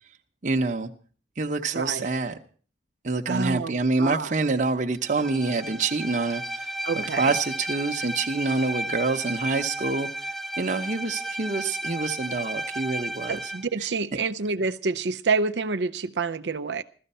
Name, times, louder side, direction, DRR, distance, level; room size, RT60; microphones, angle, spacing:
voice 1, 0.4-0.9 1.4-2.4 3.0-13.5 13.8-13.9, right 3 dB, 45° right, 4 dB, 0.9 m, -27 dB
voice 2, 1.7-2.1 3.3-4.3 6.8-7.3 13.3-16.8, right 4 dB, 85° right, 8 dB, 0.6 m, -28 dB
Bowed string instrument, 5.0-13.7, right 1 dB, ahead, 0.7 m, -33 dB
16.0 x 13.5 x 5.5 m, 0.42 s
head